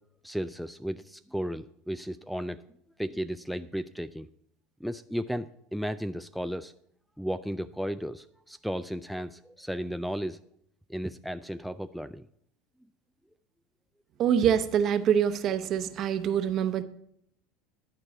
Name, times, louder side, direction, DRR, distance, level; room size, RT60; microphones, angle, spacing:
voice 1, 0.2-2.6 3.0-4.3 4.8-6.7 7.2-10.4 10.9-12.3, equal, ahead, 0.3 m, -34 dB
voice 2, 14.2-16.8, right 8 dB, 45° right, 0.9 m, -25 dB
11.5 x 4.6 x 7.9 m
hypercardioid pair, 100°, 0 cm